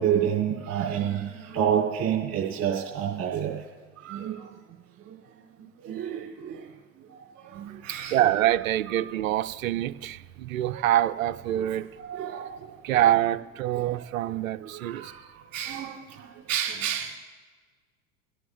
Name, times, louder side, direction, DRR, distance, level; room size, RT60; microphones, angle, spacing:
voice 1, 0.0-3.5 4.0-4.5 5.8-6.6 7.5-8.2 11.5-11.6 12.0-13.0 13.8-13.9 14.6-15.1 15.5-17.1, right 9 dB, 35° right, -4 dB, 3.1 m, -29 dB
voice 2, 7.7-11.9 12.8-15.1, right 13 dB, 65° right, 13 dB, 0.7 m, -25 dB
26.5 x 17.0 x 2.2 m, 1.4 s
figure-of-eight pair, 75°, 43 cm